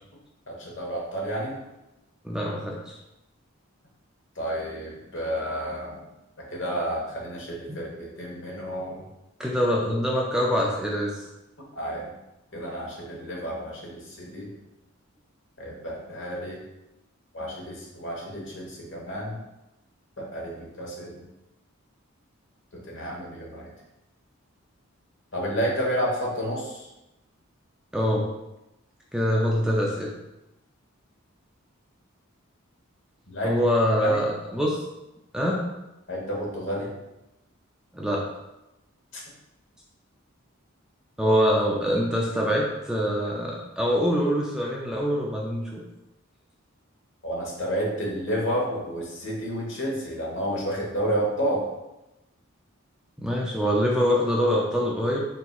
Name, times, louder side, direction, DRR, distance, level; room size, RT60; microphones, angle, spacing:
voice 1, 0.5-1.6 4.4-6.0 6.5-9.1 11.8-12.1 12.5-14.5 15.6-16.6 17.3-19.4 20.2-21.2 22.9-23.7 25.3-26.9 33.3-33.5 34.0-34.2 36.1-36.9 47.2-51.6, equal, 60° left, -2 dB, 1.2 m, -30 dB
voice 2, 2.2-2.9 7.7-7.8 9.4-11.2 27.9-28.3 29.1-30.1 33.4-34.8 35.3-35.6 37.9-38.2 41.2-45.8 53.2-55.3, equal, 5° right, -3 dB, 0.4 m, -24 dB
4.3 x 3.9 x 2.3 m, 0.95 s
head